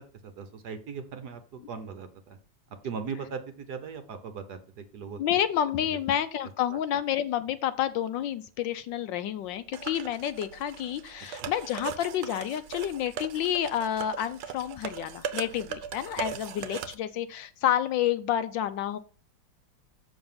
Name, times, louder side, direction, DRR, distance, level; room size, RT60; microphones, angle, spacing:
voice 1, 0.0-2.4 2.8-5.2 5.8-6.0 11.4-11.5, right 6 dB, 60° right, 9 dB, 1.3 m, -39 dB
voice 2, 5.2-19.0, left 10 dB, 75° left, 12 dB, 1.2 m, -29 dB
sound 1, 9.7-16.9, right 8 dB, 80° right, 1.6 m, -39 dB
7.1 x 6.1 x 5.6 m, 0.39 s
omnidirectional pair, 2.2 m